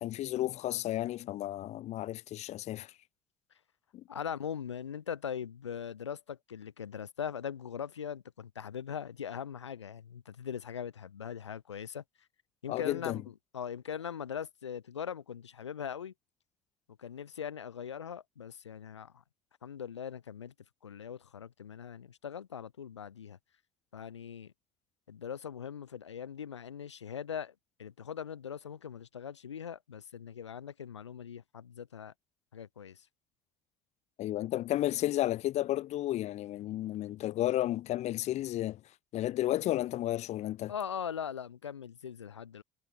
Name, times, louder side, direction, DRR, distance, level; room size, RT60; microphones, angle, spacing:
voice 1, 0.0-2.9 3.9-4.0 12.7-13.2 34.2-38.8 39.1-40.7, left 14 dB, 50° left, 1.1 m, -32 dB
voice 2, 4.1-12.0 12.6-13.2 13.5-16.1 17.0-19.2 19.6-20.5 20.8-23.4 23.9-24.5 25.1-27.5 27.8-32.1 32.5-33.0 40.7-42.6, left 8 dB, 80° left, 1.2 m, -40 dB
figure-of-eight pair, 55°, 15 cm